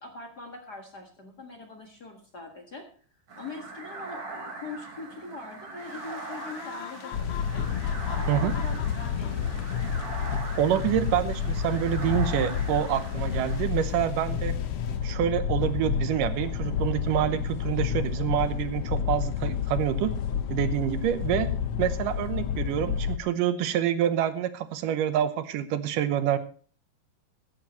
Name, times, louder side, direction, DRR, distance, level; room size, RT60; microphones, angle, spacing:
voice 1, 0.0-2.9 3.4-7.6 8.2-9.7, left 3 dB, 40° left, 3 dB, 1.7 m, -42 dB
sound 1, 3.3-13.6, right 3 dB, 60° right, 4.8 m, -41 dB
sound 2, 5.8-15.0, left 8 dB, 85° left, 3.2 m, -47 dB
sound 3, 7.1-23.2, left 8 dB, 70° left, 1.6 m, -30 dB
voice 2, 10.6-14.6 15.0-20.1 20.5-21.5 21.8-26.4, right 10 dB, 85° right, 11 dB, 2.5 m, -27 dB
15.5 x 13.0 x 3.1 m, 0.41 s
omnidirectional pair, 3.8 m